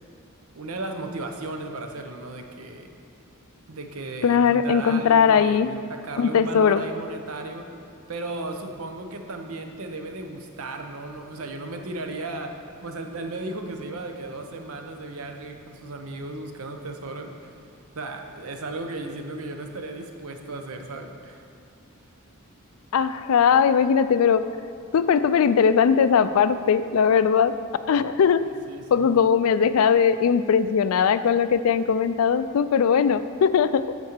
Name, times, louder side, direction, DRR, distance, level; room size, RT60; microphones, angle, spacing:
voice 1, 0.5-2.9 3.7-7.7 8.1-17.6 17.9-21.4 28.7-29.1, right 2 dB, 80° right, 5 dB, 0.8 m, -35 dB
voice 2, 4.2-5.7 6.2-6.8 22.9-24.4 24.9-27.5 27.9-28.4 28.9-33.9, left 7 dB, 80° left, 13 dB, 0.4 m, -19 dB
8.3 x 4.4 x 6.6 m, 2.6 s
head